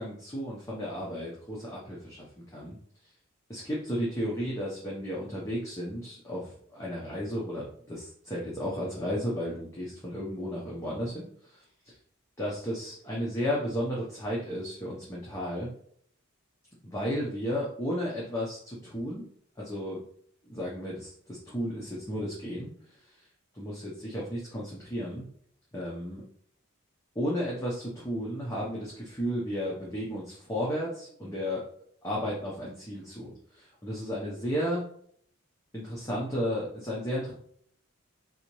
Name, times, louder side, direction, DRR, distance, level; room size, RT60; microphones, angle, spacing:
voice 1, 0.0-2.8 3.5-11.9 12.4-15.7 16.8-19.2 19.6-20.0 20.4-22.7 22.9-23.3 23.5-25.2 25.7-26.2 27.1-31.6 32.0-34.8 35.7-37.3, equal, 15° left, -5 dB, 0.7 m, -33 dB
4.0 x 2.8 x 3.0 m, 0.63 s
head